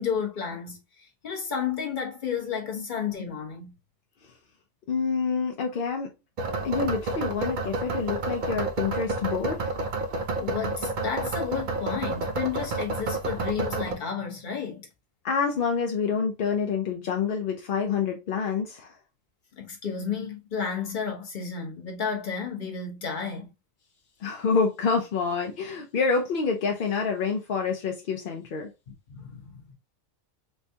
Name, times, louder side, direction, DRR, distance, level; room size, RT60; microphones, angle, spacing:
voice 1, 0.0-3.8 10.4-14.9 19.5-23.5 29.1-29.7, left 6 dB, 40° left, 0.9 m, -32 dB
voice 2, 4.9-6.1 6.6-9.7 15.2-18.9 24.2-28.7, left 5 dB, 60° left, 0.6 m, -27 dB
sound 1, 6.4-13.9, right 2 dB, 55° right, 0.5 m, -30 dB
4.3 x 2.3 x 2.7 m
omnidirectional pair, 1.4 m